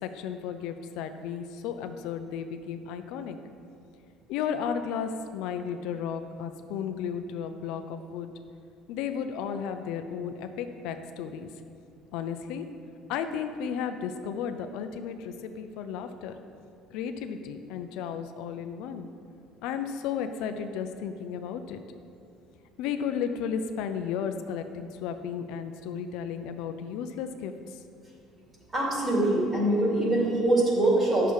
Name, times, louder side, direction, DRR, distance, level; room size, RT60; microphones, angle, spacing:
voice 1, 0.0-3.4 4.3-8.3 8.9-11.5 12.1-12.6 13.1-16.4 16.9-19.1 19.6-21.8 22.8-27.8, left 7 dB, 75° left, 8 dB, 0.6 m, -34 dB
voice 2, 28.7-31.3, right 1 dB, 25° right, -4 dB, 2.4 m, -23 dB
10.0 x 6.8 x 4.7 m, 2.6 s
cardioid pair, 150°, 0 cm